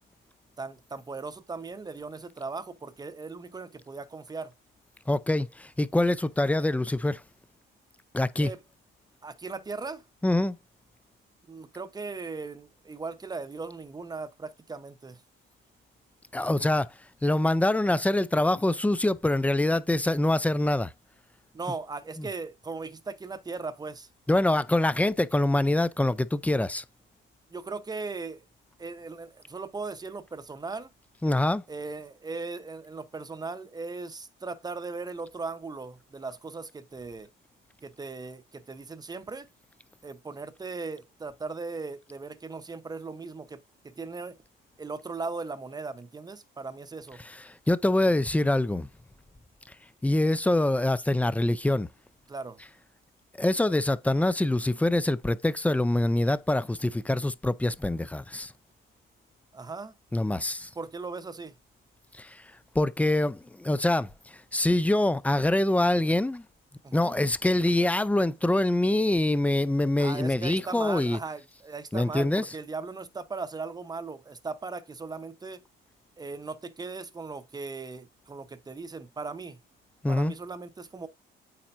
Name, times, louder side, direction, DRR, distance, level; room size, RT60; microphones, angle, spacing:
voice 1, 0.6-4.5 8.4-8.6 9.2-10.0 11.5-15.2 21.5-24.1 27.5-28.5 28.8-30.9 31.7-37.3 37.8-39.5 40.0-44.4 44.8-47.2 52.3-52.6 59.5-59.9 60.8-61.5 66.8-67.2 70.0-75.6 76.2-79.6 80.1-81.1, right 4 dB, 20° right, 0.9 m, -38 dB
voice 2, 5.1-7.2 8.1-8.5 10.2-10.6 16.3-16.9 17.2-20.9 22.2-22.3 24.3-26.8 31.2-31.6 47.2-48.9 50.0-51.9 53.4-58.5 60.1-60.7 62.1-62.4 62.7-66.4 66.9-71.2 71.9-72.5 80.0-80.3, left 1 dB, 5° left, 0.5 m, -25 dB
8.8 x 4.3 x 2.6 m
cardioid pair, 105°, 21 cm